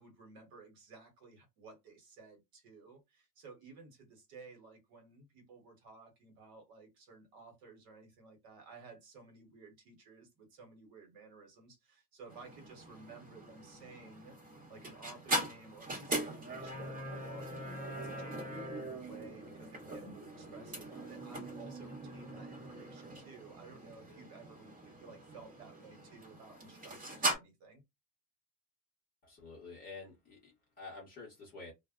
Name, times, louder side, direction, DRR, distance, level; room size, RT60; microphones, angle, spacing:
voice 1, 0.0-14.4 14.7-27.8, right 4 dB, 50° right, 1.1 m, -55 dB
sound 1, 12.3-27.3, right 1 dB, 15° right, 0.9 m, -41 dB
voice 2, 29.2-31.7, left 3 dB, 20° left, 0.8 m, -49 dB
2.2 x 2.0 x 3.5 m
supercardioid pair, 170°, 49 cm